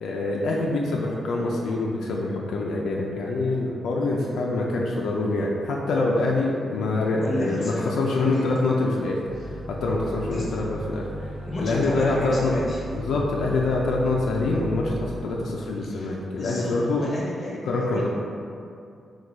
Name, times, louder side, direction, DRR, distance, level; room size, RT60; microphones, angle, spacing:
voice 1, 0.0-11.3 11.6-12.5 12.9-17.0 17.6-18.1, left 2 dB, 85° left, -2 dB, 0.4 m, -25 dB
voice 2, 7.1-8.4 10.1-10.7 11.5-12.8 15.9-18.1, left 1 dB, 35° left, -5 dB, 0.9 m, -33 dB
sound 1, 9.3-15.2, right 1 dB, 80° right, 1.1 m, -37 dB
3.8 x 2.3 x 4.5 m, 2.5 s
wide cardioid pair, 155°, 0 cm